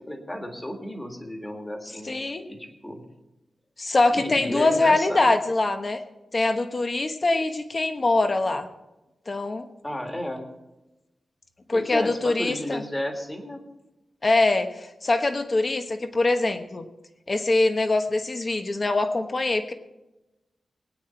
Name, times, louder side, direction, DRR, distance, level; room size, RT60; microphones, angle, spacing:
voice 1, 0.0-2.2 2.5-3.0 4.1-5.3 9.8-10.5 11.7-13.6, left 1 dB, 15° left, 3 dB, 2.0 m, -33 dB
voice 2, 2.0-2.5 3.8-6.0 6.3-8.7 9.3-9.7 11.7-12.8 14.2-16.8 17.3-19.7, left 2 dB, 30° left, 7 dB, 1.1 m, -23 dB
21.5 x 9.4 x 4.5 m, 1.0 s
wide cardioid pair, 160°, 0 cm